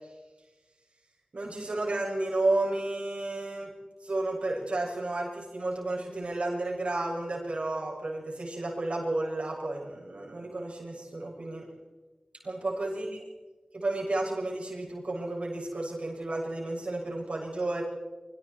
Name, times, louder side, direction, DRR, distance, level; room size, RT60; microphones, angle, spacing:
voice 1, 1.3-3.7 4.0-11.7 12.4-13.1 13.7-17.8, right 2 dB, 70° right, -2 dB, 7.2 m, -32 dB
27.5 x 25.0 x 4.6 m, 1.2 s
wide cardioid pair, 55°, 2 cm